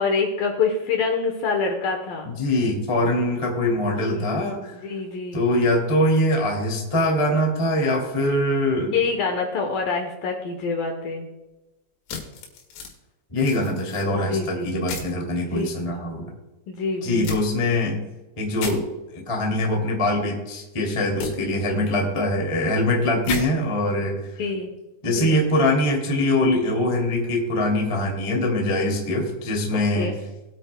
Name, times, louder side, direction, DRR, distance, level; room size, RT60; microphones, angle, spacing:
voice 1, 0.0-2.3 4.0-4.3 4.7-5.4 8.8-11.3 14.1-14.7 15.4-15.7 16.7-17.4 24.4-24.7 25.0-25.4 29.7-30.2, left 4 dB, 70° left, 3 dB, 2.3 m, -26 dB
voice 2, 2.2-4.8 5.3-8.9 13.3-16.3 17.0-18.0 18.4-18.8 19.1-24.1 25.0-30.1, left 1 dB, 15° left, 0 dB, 1.0 m, -23 dB
sound 1, 12.1-12.9 13.4-14.1 14.9-15.1 17.2-17.4 18.6-18.8 21.2-21.3 23.2-23.4, left 6 dB, 85° left, 4.2 m, -32 dB
21.0 x 8.8 x 2.2 m, 1.1 s
omnidirectional pair, 5.1 m